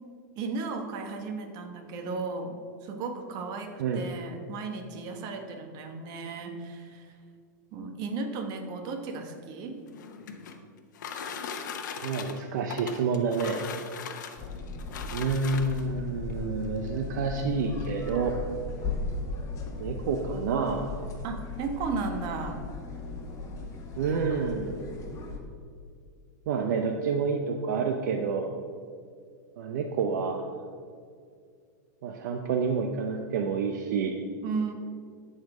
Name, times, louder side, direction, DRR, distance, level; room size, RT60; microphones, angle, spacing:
voice 1, 0.4-7.1 7.7-9.8 21.2-22.6 34.4-34.7, right 4 dB, 45° right, 5 dB, 1.2 m, -35 dB
sound 1, 9.8-16.0 16.9-17.0 17.4-17.5 17.8-18.2, left 6 dB, 75° left, 0.9 m, -39 dB
voice 2, 12.0-13.7 15.1-18.4 19.8-21.0 24.0-24.8 26.5-28.5 29.6-30.5 32.0-34.2, right 5 dB, 65° right, 4 dB, 0.7 m, -29 dB
sound 2, 14.4-25.4, left 3 dB, 30° left, 1.4 m, -37 dB
13.0 x 4.4 x 4.9 m, 2.2 s
hypercardioid pair, 130°, 10 cm